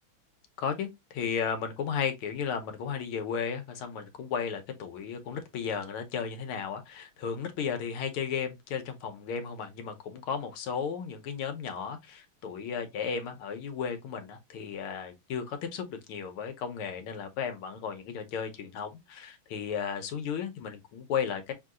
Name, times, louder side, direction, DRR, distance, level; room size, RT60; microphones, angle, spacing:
voice 1, 0.6-21.5, left 7 dB, 80° left, 1.8 m, -34 dB
6.3 x 2.8 x 2.4 m
omnidirectional pair, 2.4 m